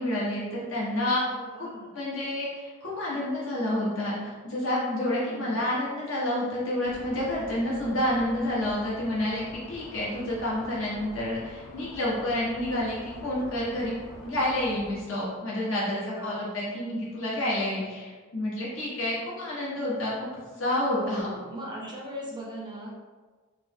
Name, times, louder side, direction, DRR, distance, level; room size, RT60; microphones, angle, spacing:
voice 1, 0.0-1.2 1.6-1.7 1.9-13.9 14.2-20.1 20.6-21.3, left 1 dB, 60° left, -6 dB, 1.1 m, -29 dB
voice 2, 1.3-1.9 5.0-5.6 15.8-16.4 20.9-22.9, right 1 dB, 20° right, -3 dB, 0.4 m, -39 dB
sound 1, 6.8-14.9, equal, 25° left, 1.1 m, -46 dB
3.4 x 2.0 x 3.4 m, 1.4 s
head